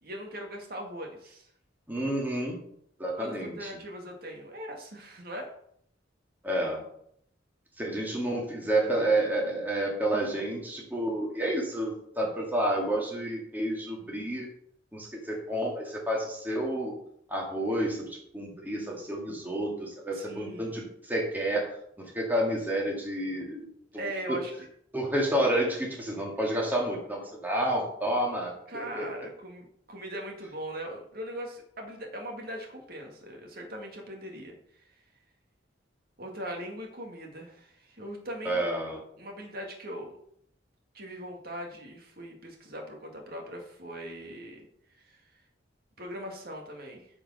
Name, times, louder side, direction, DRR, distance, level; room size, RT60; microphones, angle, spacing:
voice 1, 0.0-1.5 3.1-5.5 20.1-20.8 24.0-24.5 28.7-34.8 36.2-38.6 39.2-40.2 40.9-44.7 45.0-45.2 46.0-47.1, equal, 55° right, 1 dB, 1.9 m, -40 dB
voice 2, 1.9-2.6 3.0-3.6 6.4-6.8 7.8-14.5 14.9-16.9 17.3-23.7 23.9-24.0 24.9-29.0 38.4-39.0, right 1 dB, 10° right, -2 dB, 1.9 m, -30 dB
9.0 x 5.0 x 6.2 m, 0.68 s
head